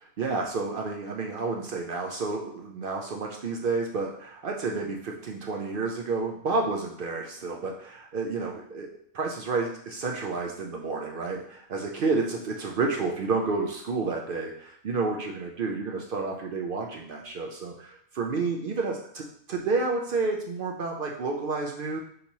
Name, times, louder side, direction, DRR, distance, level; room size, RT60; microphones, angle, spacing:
voice 1, 0.2-8.9 9.1-19.2 19.5-22.0, right 3 dB, 65° right, 1 dB, 0.5 m, -30 dB
6.5 x 2.9 x 2.7 m, 0.64 s
omnidirectional pair, 1.4 m